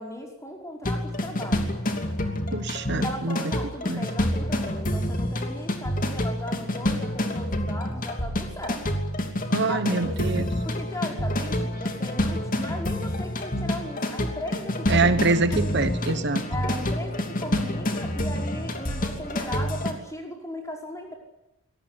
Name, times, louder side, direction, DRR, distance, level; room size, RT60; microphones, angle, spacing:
voice 1, 0.0-1.7 3.0-8.8 9.7-15.6 16.5-21.1, left 1 dB, 15° left, 2 dB, 5.1 m, -37 dB
sound 1, 0.8-19.9, left 1 dB, 35° left, 2.9 m, -28 dB
voice 2, 2.5-3.4 3.9-4.0 9.5-10.5 14.9-16.4, right 3 dB, 50° right, 11 dB, 1.2 m, -25 dB
24.5 x 19.0 x 9.8 m, 0.94 s
head